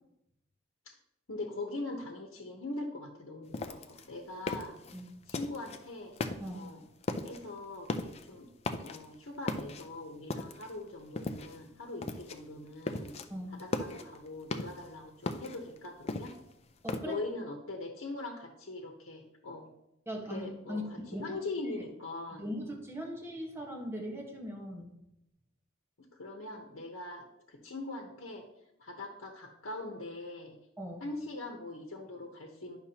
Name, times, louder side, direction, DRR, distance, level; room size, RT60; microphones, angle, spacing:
voice 1, 1.3-4.8 5.3-6.2 6.5-6.8 7.2-8.5 8.8-13.1 13.5-16.3 17.0-19.7 20.3-22.5 26.0-28.4 28.8-30.6 31.0-32.8, left 2 dB, 85° left, 1 dB, 1.0 m, -42 dB
sound 1, 3.5-5.8 6.2-6.7 7.0-7.4 7.8-8.3 8.6-9.1 9.5-10.8 11.2-11.7 12.0-12.4 12.7-13.3 13.6-14.9 15.3-17.0, left 2 dB, 30° left, 0.5 m, -37 dB
voice 2, 16.8-17.2 20.1-20.8 21.1-21.2 22.3-25.0 30.8-31.1, equal, 15° right, -1 dB, 1.4 m, -39 dB
9.9 x 5.9 x 2.9 m, 0.84 s
head